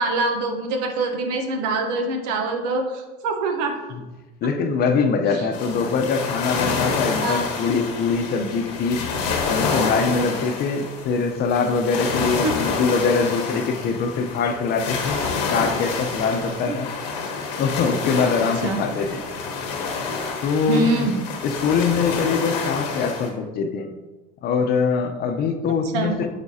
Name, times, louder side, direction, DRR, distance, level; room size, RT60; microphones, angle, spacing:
voice 1, 0.0-3.8 7.2-7.4 12.4-12.5 16.7-16.8 18.6-18.8 20.7-21.2 25.9-26.1, right 2 dB, 80° right, 4 dB, 1.0 m, -24 dB
voice 2, 4.4-9.0 9.4-15.2 15.5-16.9 17.6-19.2 20.4-21.1 21.4-23.9 24.4-26.3, left 5 dB, 50° left, 6 dB, 0.8 m, -23 dB
sound 1, 5.5-23.3, left 4 dB, 90° left, 1.3 m, -28 dB
8.2 x 4.4 x 2.8 m, 1.1 s
supercardioid pair, 110°, 21 cm